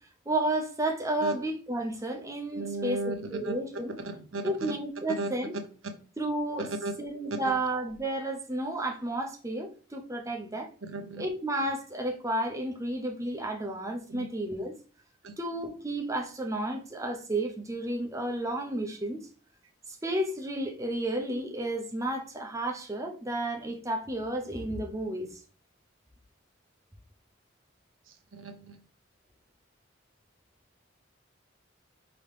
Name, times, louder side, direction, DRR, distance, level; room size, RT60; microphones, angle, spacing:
voice 1, 0.3-4.0 4.4-5.6 6.2-6.7 7.0-10.7 11.2-14.8 15.4-19.2 19.9-25.4, right 1 dB, 15° right, 0.7 m, -32 dB
voice 2, 2.5-3.5 4.0-4.7 5.1-5.3 6.6-6.9 7.4-7.6 10.9-11.2 14.1-14.3 15.2-15.4 28.3-28.8, right 2 dB, 80° right, 0.8 m, -35 dB
5.3 x 3.0 x 3.3 m
head